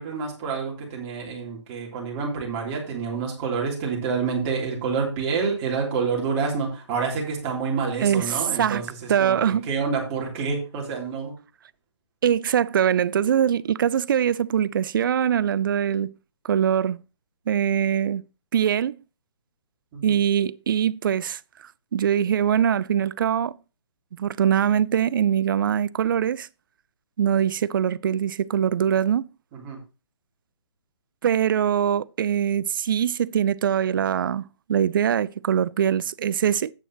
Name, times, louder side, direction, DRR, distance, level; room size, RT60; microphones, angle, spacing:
voice 1, 0.0-8.8 9.2-9.4 9.7-11.3 19.9-20.2 29.5-29.8, right 5 dB, 25° right, 3.3 m, -28 dB
voice 2, 8.0-9.7 12.2-16.1 16.4-17.0 17.5-18.2 18.5-19.0 20.0-21.4 21.9-23.6 24.2-26.5 27.2-29.3 31.2-36.7, right 9 dB, 45° right, 0.4 m, -22 dB
10.5 x 8.9 x 3.0 m
figure-of-eight pair, 145°, 15 cm